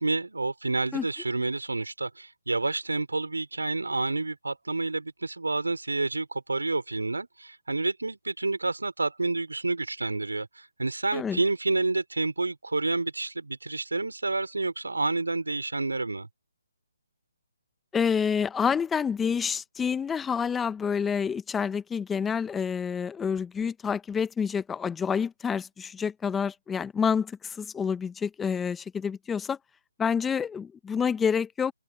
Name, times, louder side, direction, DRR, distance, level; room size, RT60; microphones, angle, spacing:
voice 1, 0.0-16.3, right 3 dB, 90° right, 5.1 m, -29 dB
voice 2, 17.9-29.6 30.0-31.7, left 6 dB, 10° left, 1.3 m, -28 dB
figure-of-eight pair, 145°, 0 cm